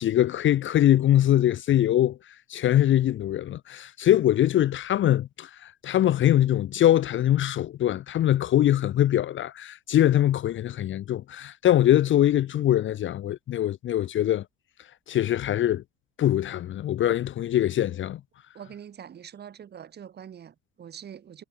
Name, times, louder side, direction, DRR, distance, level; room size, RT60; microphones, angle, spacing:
voice 1, 0.0-2.2 2.5-14.4 15.1-15.8 16.2-18.2, left 12 dB, 40° left, 1.0 m, -23 dB
voice 2, 18.5-21.4, right 8 dB, 30° right, 3.2 m, -44 dB
cardioid pair, 170°, 31 cm